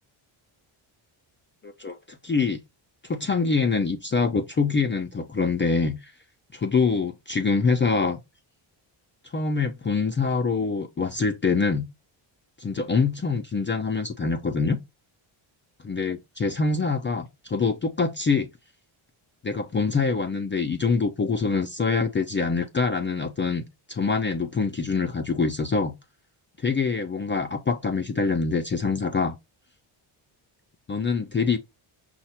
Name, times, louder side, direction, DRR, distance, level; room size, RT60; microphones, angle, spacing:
voice 1, 1.6-2.6 3.0-6.1 6.5-8.2 9.3-11.8 12.6-14.8 15.9-18.5 19.4-25.9 26.6-29.3 30.9-31.6, left 4 dB, 25° left, 0.3 m, -25 dB
5.7 x 2.1 x 4.2 m
cardioid pair, 125°, 50 cm